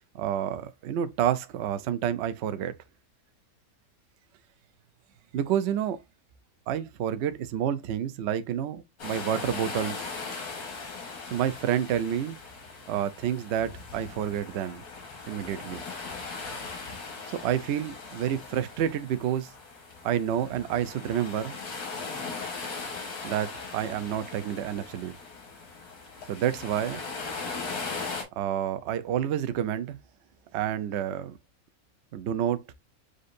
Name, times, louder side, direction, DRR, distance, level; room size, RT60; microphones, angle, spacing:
voice 1, 0.1-2.7 5.3-6.0 6.7-10.1 11.3-12.4 12.9-14.8 15.3-15.8 17.3-19.5 20.0-21.6 23.2-25.1 26.3-27.0 28.3-30.0 30.5-31.4 32.1-32.6, right 10 dB, 65° right, 0.7 m, -29 dB
sound 1, 9.0-28.2, left 4 dB, 90° left, 1.8 m, -39 dB
6.4 x 2.6 x 2.5 m
omnidirectional pair, 1.6 m